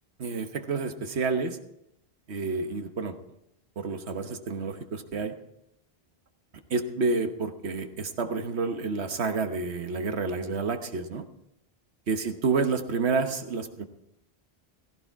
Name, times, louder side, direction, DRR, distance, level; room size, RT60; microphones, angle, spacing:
voice 1, 0.2-1.6 2.3-3.2 3.8-5.4 6.7-11.3 12.1-13.8, right 4 dB, 85° right, 7 dB, 1.4 m, -29 dB
16.0 x 15.0 x 4.6 m, 0.82 s
omnidirectional pair, 1.1 m